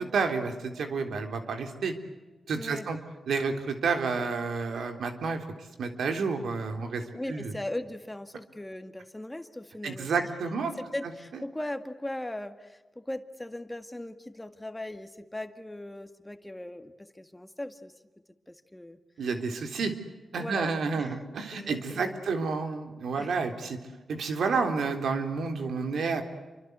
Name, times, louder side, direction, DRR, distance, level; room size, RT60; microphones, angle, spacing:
voice 1, 0.0-1.9 2.5-3.0 3.3-5.4 5.8-7.5 9.8-10.7 11.3-11.4 19.2-19.9 20.3-23.8 24.1-26.2, right 4 dB, 85° right, 6 dB, 3.6 m, -30 dB
voice 2, 2.5-2.9 7.1-10.1 10.6-17.9 18.5-19.0 20.4-20.7 21.0-21.2 21.5-22.2 23.1-23.4, left 1 dB, 10° left, 8 dB, 1.9 m, -39 dB
29.0 x 24.5 x 8.1 m, 1.2 s
cardioid pair, 95°, 0 cm